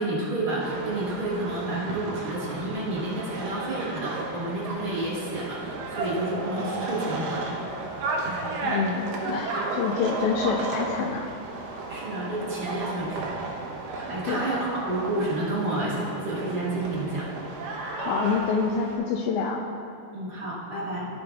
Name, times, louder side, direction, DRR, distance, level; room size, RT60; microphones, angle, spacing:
voice 1, 0.0-7.4 8.2-8.5 11.9-13.4 13.9-17.3 20.1-21.1, right 1 dB, 40° right, -8 dB, 0.7 m, -30 dB
sound 1, 0.6-19.0, right 3 dB, 90° right, 2.6 m, -33 dB
voice 2, 8.6-11.3 14.2-14.5 18.0-19.6, left 5 dB, 80° left, 0 dB, 1.7 m, -27 dB
15.0 x 6.9 x 2.3 m, 2.5 s
omnidirectional pair, 3.8 m